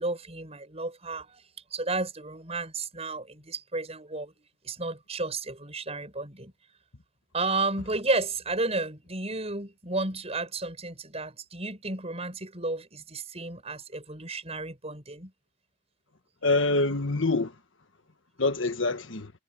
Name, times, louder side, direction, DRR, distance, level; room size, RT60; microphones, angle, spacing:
voice 1, 0.0-1.4 1.7-4.3 4.6-6.5 7.3-15.3, right 3 dB, 30° right, 6.9 m, -32 dB
voice 2, 16.4-17.5 18.4-19.3, left 3 dB, 75° left, 1.5 m, -25 dB
head